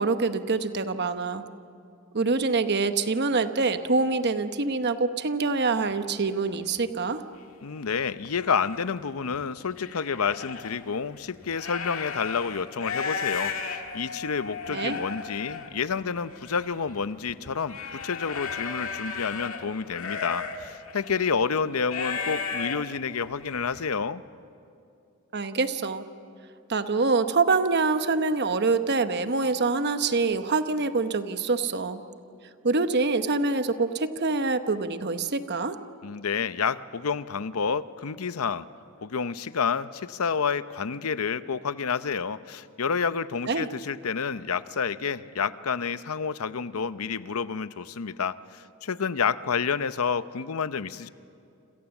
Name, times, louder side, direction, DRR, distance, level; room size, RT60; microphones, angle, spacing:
voice 1, 0.0-1.4 2.1-7.2 14.7-15.0 25.3-26.0 26.7-32.0 32.6-35.8 43.5-43.7, right 3 dB, 50° right, 10 dB, 1.0 m, -25 dB
sound 1, 5.9-6.0 6.5-6.8 7.4-7.5 8.0-8.8 9.3-10.8 11.3-23.9, left 5 dB, 65° left, 2.1 m, -35 dB
voice 2, 7.6-24.2 36.0-38.7 39.0-51.1, left 6 dB, 85° left, 14 dB, 0.7 m, -29 dB
29.0 x 27.0 x 7.2 m, 2.6 s
head